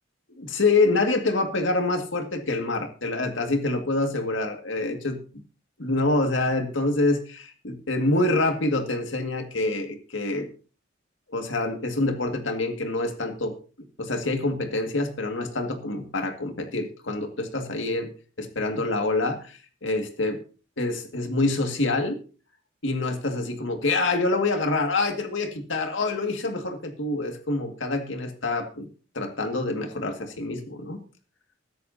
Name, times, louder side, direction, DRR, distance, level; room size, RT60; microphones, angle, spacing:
voice 1, 0.4-5.2 5.8-10.5 11.3-13.6 14.0-18.1 18.4-20.4 20.8-22.2 22.8-28.9 29.1-31.0, left 2 dB, 75° left, 6 dB, 2.0 m, -26 dB
21.5 x 10.0 x 2.8 m, 0.35 s
head